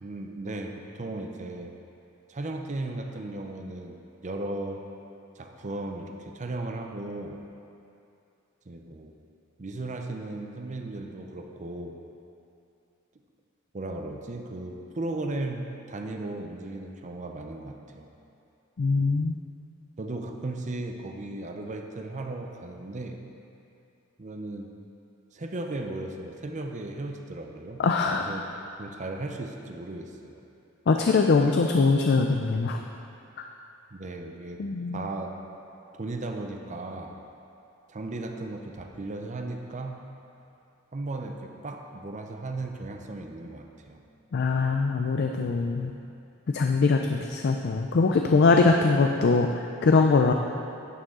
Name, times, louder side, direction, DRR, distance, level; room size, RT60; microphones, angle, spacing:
voice 1, 0.0-1.7 2.3-4.8 5.4-7.4 8.7-9.1 9.6-12.0 13.7-18.1 20.0-23.2 24.2-24.7 25.3-27.8 28.2-28.4 28.8-30.4 33.9-34.6 34.9-35.4 35.9-37.2 37.9-40.0 40.9-44.0, right 2 dB, 35° right, 4 dB, 0.6 m, -36 dB
voice 2, 18.8-19.4 27.8-28.3 30.9-32.8 34.6-35.0 44.3-45.9 46.5-50.3, left 4 dB, 50° left, 3 dB, 0.4 m, -22 dB
11.0 x 6.5 x 3.7 m, 2.7 s
head